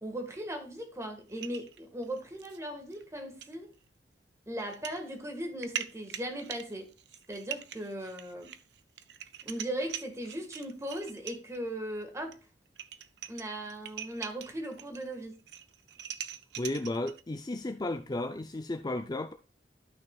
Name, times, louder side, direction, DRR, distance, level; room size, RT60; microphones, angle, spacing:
voice 1, 0.0-3.7 4.5-6.9 7.3-8.5 9.4-12.4 13.3-15.4, right 1 dB, 15° right, 1.6 m, -38 dB
sound 1, 1.3-2.6 2.9-3.0 3.4-3.6 4.6-5.0 5.4-11.6 12.3-12.4 12.7-15.1 15.3-17.2, right 9 dB, 70° right, 0.6 m, -42 dB
voice 2, 16.6-19.3, left 2 dB, 25° left, 0.5 m, -34 dB
13.0 x 5.9 x 2.4 m
head